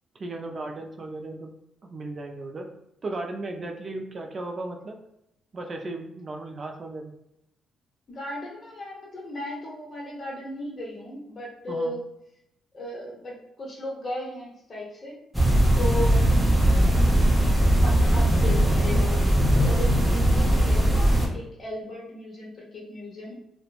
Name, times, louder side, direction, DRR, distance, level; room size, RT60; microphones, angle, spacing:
voice 1, 0.1-1.5 1.8-2.7 3.0-5.0 5.5-7.1 11.7-12.0 20.6-20.7, right 2 dB, 40° right, 3 dB, 0.3 m, -35 dB
voice 2, 8.1-12.0 12.7-15.2 15.8-16.4 17.6-23.3, left 1 dB, 40° left, -3 dB, 0.9 m, -35 dB
sound 1, 15.3-21.3, right 1 dB, 5° right, 0.7 m, -20 dB
2.9 x 2.1 x 2.4 m, 0.81 s
cardioid pair, 90°, 0 cm